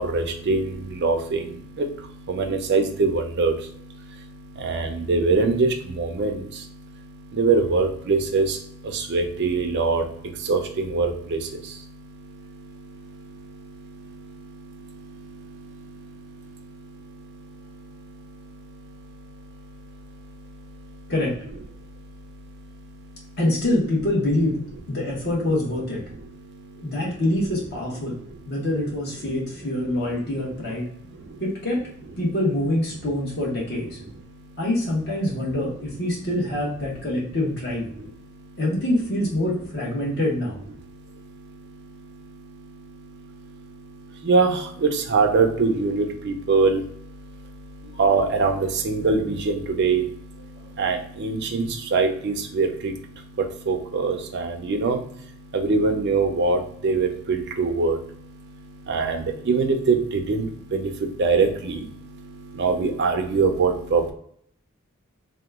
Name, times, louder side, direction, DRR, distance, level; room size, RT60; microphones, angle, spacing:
voice 1, 0.0-21.1 21.8-23.4 26.3-27.0 28.1-28.2 30.9-31.4 34.3-34.6 37.9-38.6 40.8-64.1, right 4 dB, 55° right, 4 dB, 0.4 m, -26 dB
voice 2, 23.4-24.6 24.9-26.0 26.8-28.2 28.5-30.8 31.4-31.8 32.2-34.0 34.6-37.8 38.6-40.5 47.8-48.0, left 1 dB, 50° left, -3 dB, 1.2 m, -25 dB
2.9 x 2.2 x 3.4 m, 0.65 s
head